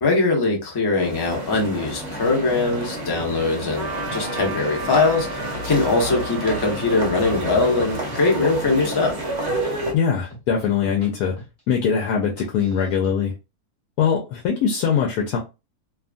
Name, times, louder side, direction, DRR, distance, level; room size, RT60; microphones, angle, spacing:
voice 1, 0.0-5.3 5.6-9.1, left 3 dB, 30° left, 0.4 m, -21 dB
sound 1, 1.0-9.9, right 1 dB, 50° right, 0.9 m, -30 dB
sound 2, 2.7-3.5 3.9-5.0 5.3-6.2 6.6-8.4 8.6-9.0 9.3-11.1 11.4-11.7 12.1-13.1, equal, 10° left, 1.1 m, -42 dB
Trumpet, 3.8-9.6, right 4 dB, 75° right, 1.1 m, -36 dB
voice 2, 9.9-11.3 11.7-13.3 14.0-15.4, left 7 dB, 75° left, 1.1 m, -22 dB
2.8 x 2.4 x 2.4 m
omnidirectional pair, 1.7 m